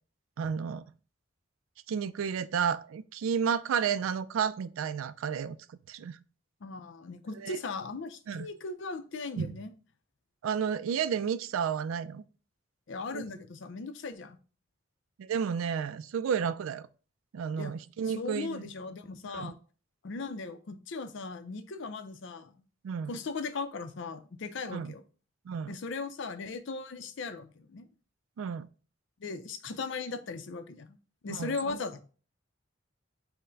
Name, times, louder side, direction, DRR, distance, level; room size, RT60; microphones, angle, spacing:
voice 1, 0.4-0.8 1.9-5.6 5.9-6.2 7.4-7.6 8.3-8.5 9.4-9.5 10.4-12.2 13.1-13.2 15.2-16.9 17.3-18.7 19.3-19.5 22.8-23.1 24.7-24.9 25.5-25.8 28.4-28.7 31.3-31.8, right 7 dB, 85° right, 0.3 m, -32 dB
voice 2, 6.6-9.7 12.9-14.4 17.6-17.7 18.1-19.6 20.0-22.5 23.1-25.0 25.7-27.9 29.2-31.0 31.2-32.0, left 4 dB, 60° left, 0.5 m, -38 dB
5.5 x 2.1 x 3.8 m
head